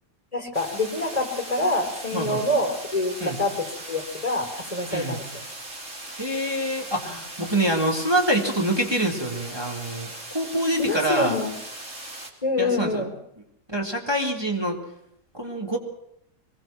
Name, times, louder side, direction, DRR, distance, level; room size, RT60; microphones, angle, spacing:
voice 1, 0.3-5.2 10.8-11.5 12.4-13.1, left 2 dB, 20° left, 4 dB, 4.7 m, -26 dB
sound 1, 0.5-12.3, right 1 dB, 45° right, 3.8 m, -39 dB
voice 2, 2.1-2.4 3.2-3.4 4.9-5.2 6.2-11.4 12.6-13.0 13.7-14.8 15.3-15.8, right 1 dB, 15° right, 0 dB, 3.5 m, -26 dB
24.0 x 22.5 x 6.1 m, 0.75 s
omnidirectional pair, 1.7 m